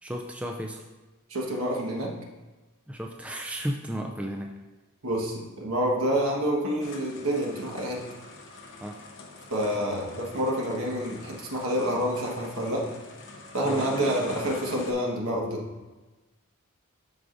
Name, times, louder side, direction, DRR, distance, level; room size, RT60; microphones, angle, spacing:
voice 1, 0.0-0.8 2.9-4.5 8.8-9.0 13.6-13.8, equal, 5° right, 2 dB, 0.3 m, -34 dB
voice 2, 1.3-2.1 5.0-8.1 9.5-12.9 13.5-15.7, equal, 70° right, -1 dB, 1.4 m, -28 dB
sound 1, 6.8-14.9, left 2 dB, 55° left, 0.9 m, -43 dB
12.5 x 4.8 x 2.6 m, 1.2 s
head